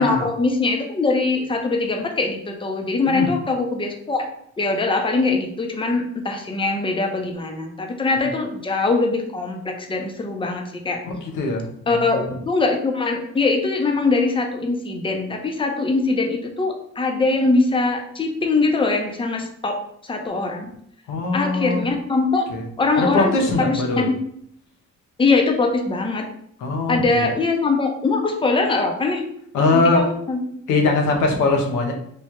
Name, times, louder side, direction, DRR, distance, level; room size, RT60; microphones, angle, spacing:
voice 1, 0.0-4.3 4.6-11.0 11.9-20.7 21.3-22.5 22.8-23.3 23.6-24.2 25.2-26.3 26.9-29.2 29.7-30.4, left 3 dB, 15° left, 3 dB, 0.6 m, -22 dB
voice 2, 11.0-12.3 21.1-21.8 22.5-22.6 22.9-24.1 26.6-27.2 29.5-30.1 30.7-31.9, left 3 dB, 90° left, 2 dB, 0.8 m, -21 dB
3.1 x 2.3 x 4.3 m, 0.69 s
cardioid pair, 90°, 30 cm